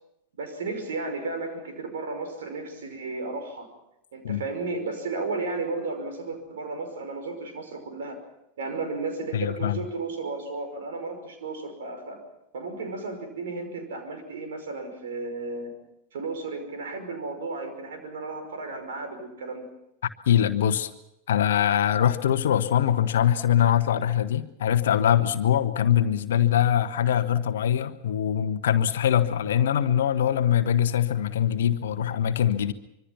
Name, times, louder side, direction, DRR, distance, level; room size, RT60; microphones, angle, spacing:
voice 1, 0.4-3.7 4.1-8.2 8.6-12.2 12.5-15.7 16.1-19.7, right 3 dB, 60° right, 6 dB, 5.4 m, -34 dB
voice 2, 9.3-9.8 20.3-20.9 21.3-32.7, left 10 dB, 60° left, 11 dB, 1.2 m, -23 dB
25.0 x 24.5 x 5.9 m, 0.83 s
figure-of-eight pair, 90°, 0 cm